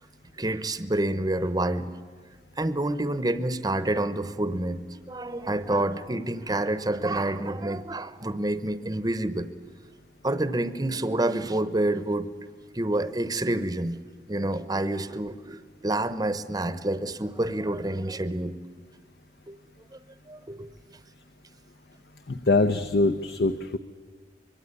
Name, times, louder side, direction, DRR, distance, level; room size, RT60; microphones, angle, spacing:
voice 1, 0.4-1.9 2.6-9.5 10.2-12.3 12.7-14.0 14.3-18.6 19.5-19.6 20.3-20.7, right 1 dB, 20° right, 12 dB, 0.9 m, -28 dB
voice 2, 22.3-23.8, left 2 dB, 60° left, 10 dB, 0.8 m, -23 dB
25.0 x 22.5 x 9.9 m, 1.5 s
head